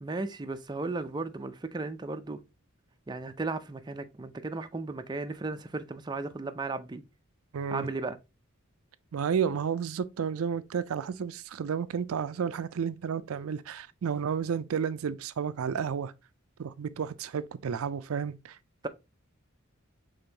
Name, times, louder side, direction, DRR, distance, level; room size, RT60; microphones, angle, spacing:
voice 1, 0.0-2.4 3.1-7.0 7.7-8.2, right 3 dB, 20° right, 0.4 m, -35 dB
voice 2, 7.5-7.9 9.1-16.1 16.6-18.6, right 7 dB, 90° right, 0.4 m, -31 dB
5.2 x 3.5 x 2.8 m
head